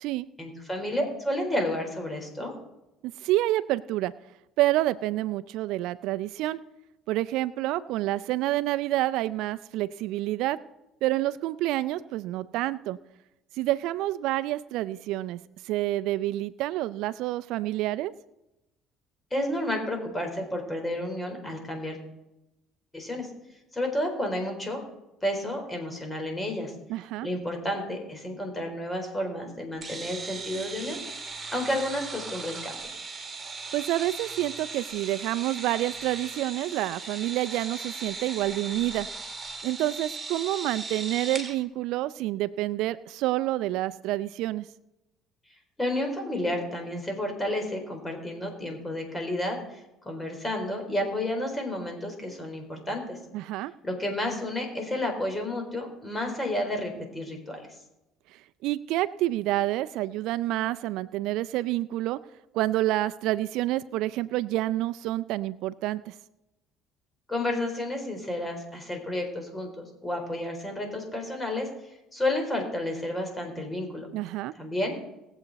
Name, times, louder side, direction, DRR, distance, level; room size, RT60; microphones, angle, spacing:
voice 1, 0.4-2.5 19.3-22.0 22.9-23.3 23.7-24.8 25.2-26.7 27.2-32.7 45.8-53.2 53.8-57.6 67.3-71.7 72.1-74.1 74.6-74.9, left 1 dB, 15° left, 3 dB, 4.1 m, -31 dB
voice 2, 3.0-4.1 4.6-6.6 7.1-10.6 11.0-13.0 13.6-15.4 15.6-18.1 26.9-27.3 33.7-39.1 39.6-44.6 53.3-53.7 58.6-62.2 62.5-66.1 74.1-74.5, right 16 dB, 75° right, 15 dB, 0.4 m, -28 dB
sound 1, 29.8-41.5, right 4 dB, 25° right, 2.2 m, -38 dB
20.0 x 8.0 x 4.1 m, 0.91 s
supercardioid pair, 90°, 0 cm